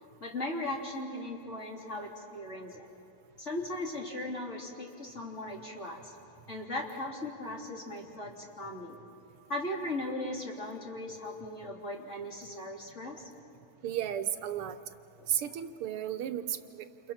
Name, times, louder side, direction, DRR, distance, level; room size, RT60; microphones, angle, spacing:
voice 1, 0.2-2.9 3.4-6.2 6.5-9.0 9.5-13.2 15.2-15.3, left 1 dB, 30° left, -2 dB, 3.5 m, -38 dB
voice 2, 13.8-14.8 15.3-17.1, right 10 dB, 85° right, 11 dB, 1.9 m, -34 dB
29.5 x 28.5 x 5.8 m, 2.9 s
omnidirectional pair, 2.4 m